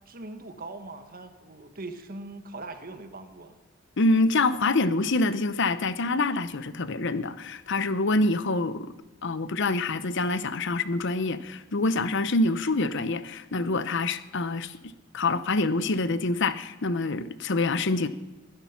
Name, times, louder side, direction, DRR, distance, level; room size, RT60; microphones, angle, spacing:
voice 1, 0.1-3.6, right 2 dB, 45° right, 1.5 m, -41 dB
voice 2, 4.0-8.9 9.2-14.8 15.1-18.1, left 2 dB, 60° left, 0.8 m, -26 dB
21.0 x 11.5 x 5.9 m
head